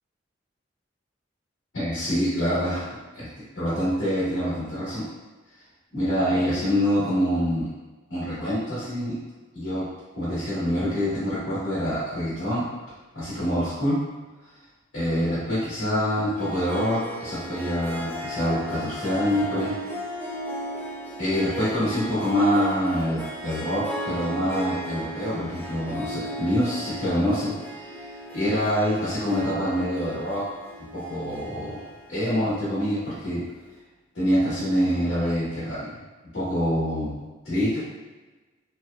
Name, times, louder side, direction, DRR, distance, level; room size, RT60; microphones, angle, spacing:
voice 1, 1.7-2.9 3.1-3.3 3.6-5.1 5.9-7.7 8.1-9.2 9.5-9.9 10.1-12.7 13.1-14.0 14.9-19.7 21.2-30.4 30.8-31.8 32.1-33.4 34.1-36.0 36.3-37.2 37.4-37.8, equal, 80° left, -11 dB, 1.1 m, -25 dB
Harp, 16.4-33.1, equal, 10° left, 0.4 m, -36 dB
2.9 x 2.2 x 2.2 m, 1.2 s
head